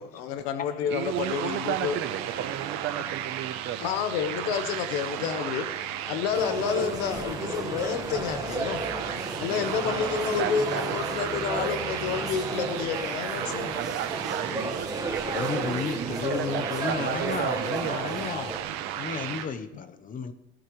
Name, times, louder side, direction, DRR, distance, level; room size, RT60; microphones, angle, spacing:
voice 1, 0.0-2.0 3.8-5.7 6.0-8.8 9.4-13.7, left 7 dB, 85° left, 9 dB, 1.1 m, -29 dB
sound 1, 0.8-19.5, right 10 dB, 60° right, 1.3 m, -35 dB
voice 2, 0.9-3.9 10.4-10.8 13.7-18.0, right 11 dB, 35° right, 12 dB, 0.8 m, -34 dB
voice 3, 2.3-3.1 3.5-3.9 15.3-18.5 19.0-20.3, left 6 dB, 25° left, 12 dB, 0.8 m, -34 dB
sound 2, 6.3-18.6, right 2 dB, 10° right, 1.4 m, -33 dB
18.0 x 12.0 x 3.2 m, 0.84 s
cardioid pair, 145°, 31 cm